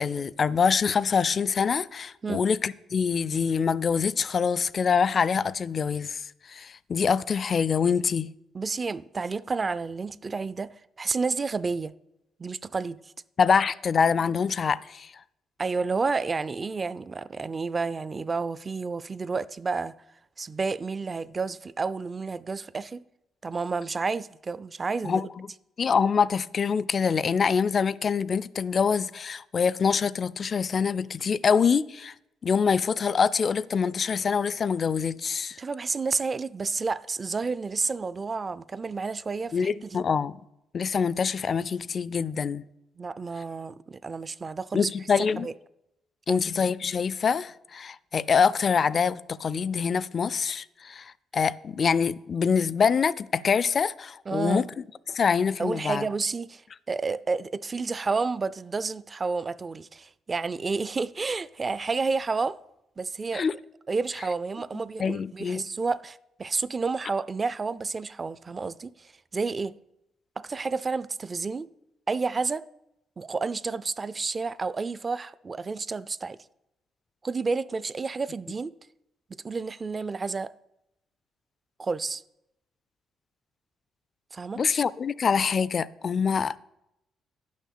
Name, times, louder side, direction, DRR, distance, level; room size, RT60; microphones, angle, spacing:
voice 1, 0.0-8.3 13.4-15.1 25.0-25.3 25.8-32.1 32.4-35.6 39.5-40.4 40.7-42.6 44.7-45.5 46.3-54.7 55.1-56.0 63.3-63.6 65.0-65.6 84.6-86.6, left 6 dB, 45° left, 0.4 m, -25 dB
voice 2, 8.5-11.9 12.4-13.0 15.6-19.9 20.4-23.0 23.4-25.3 35.6-40.0 43.0-44.9 45.4-45.5 46.3-46.4 54.3-54.6 55.6-62.6 63.0-63.4 63.9-69.8 70.4-71.7 72.1-72.6 73.2-76.4 77.2-78.7 79.3-80.5 81.8-82.2 84.3-84.6, right 4 dB, 30° right, 0.4 m, -30 dB
10.0 x 6.4 x 6.7 m
cardioid pair, 90°, 0 cm